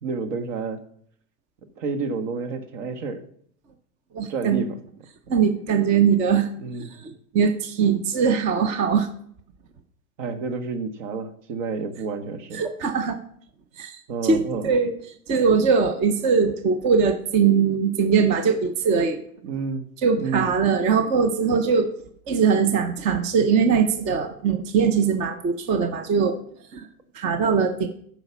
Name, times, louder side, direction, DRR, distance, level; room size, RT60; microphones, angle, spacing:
voice 1, 0.0-0.8 1.8-3.2 4.3-4.8 6.6-6.9 10.2-12.6 14.1-14.7 19.4-19.8 20.2-20.5, right 4 dB, 60° right, 8 dB, 1.6 m, -29 dB
voice 2, 4.1-4.6 5.3-6.5 7.0-9.1 12.5-13.2 13.8-14.9 15.3-19.2 20.0-21.9 22.3-26.4 26.7-26.9 27.1-27.9, right 6 dB, 20° right, 8 dB, 0.4 m, -21 dB
12.0 x 5.0 x 7.1 m, 0.65 s
supercardioid pair, 160°, 42 cm